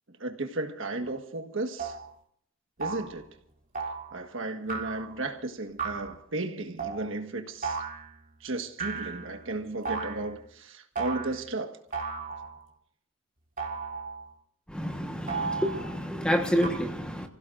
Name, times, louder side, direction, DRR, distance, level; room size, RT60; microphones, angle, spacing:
voice 1, 0.2-1.9 2.8-3.2 4.1-7.8 8.4-11.7, right 2 dB, 65° right, 1.6 m, -34 dB
sound 1, 1.0-1.1 1.8-2.1 2.8-3.2 3.7-4.2 4.7-5.2 5.8-6.1 6.8-7.1 7.6-8.1 8.8-9.4 9.8-10.3 10.9-11.4 11.9-12.6 13.6-14.2 15.3-16.0 16.6-16.7, right 5 dB, 40° right, 2.8 m, -34 dB
voice 2, 14.7-17.3, equal, 5° left, 1.3 m, -28 dB
30.0 x 16.5 x 2.6 m
head